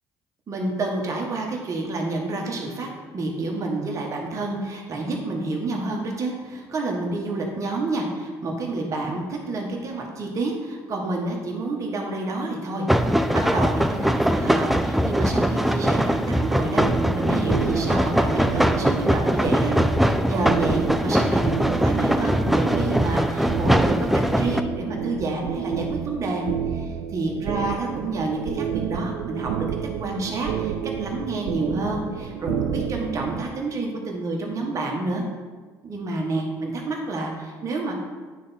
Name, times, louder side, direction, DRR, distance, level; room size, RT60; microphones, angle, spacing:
voice 1, 0.5-2.9 3.1-16.8 17.1-19.7 20.0-29.7 29.9-35.2 35.8-37.9, right 2 dB, 45° right, 0 dB, 1.4 m, -29 dB
sound 1, 12.9-24.6, equal, ahead, 0.3 m, -22 dB
sound 2, 16.8-33.4, right 8 dB, 85° right, 0.3 m, -30 dB
9.2 x 3.4 x 4.2 m, 1.4 s
supercardioid pair, 90°, 8 cm